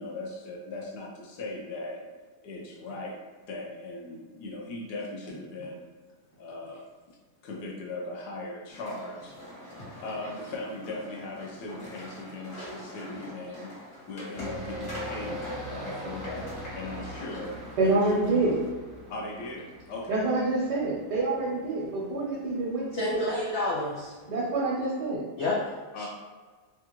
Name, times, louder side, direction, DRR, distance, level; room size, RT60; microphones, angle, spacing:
voice 1, 0.0-2.0 2.4-3.2 3.5-5.9 6.4-6.9 7.4-9.4 10.0-13.7 14.1-18.4 19.1-20.3 25.9-26.1, left 2 dB, 75° left, -2 dB, 1.3 m, -39 dB
sound 1, 8.7-18.7, left 1 dB, 40° left, 1.3 m, -44 dB
sound 2, 14.3-24.7, equal, 45° right, 0.8 m, -42 dB
voice 2, 17.8-18.6 20.1-22.9 23.3-23.4 24.3-25.2, right 2 dB, 85° right, -4 dB, 1.3 m, -26 dB
voice 3, 22.9-24.1 25.4-25.6 26.0-26.1, left 2 dB, 90° left, -5 dB, 0.6 m, -29 dB
3.4 x 2.4 x 3.0 m, 1.4 s
omnidirectional pair, 1.8 m